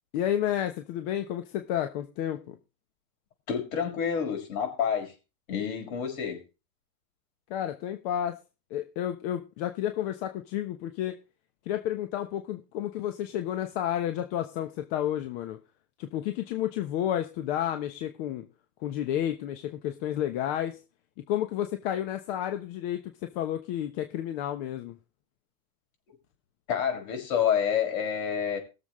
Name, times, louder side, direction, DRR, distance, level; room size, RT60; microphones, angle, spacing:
voice 1, 0.1-2.6 7.5-8.4 8.7-11.2 11.7-15.6 16.0-18.5 18.8-20.8 21.3-25.0, left 11 dB, 50° left, 7 dB, 1.1 m, -31 dB
voice 2, 3.5-5.1 5.5-6.4 26.7-28.6, left 8 dB, 75° left, 3 dB, 5.6 m, -28 dB
21.0 x 7.3 x 3.1 m, 0.30 s
supercardioid pair, 160°, 41 cm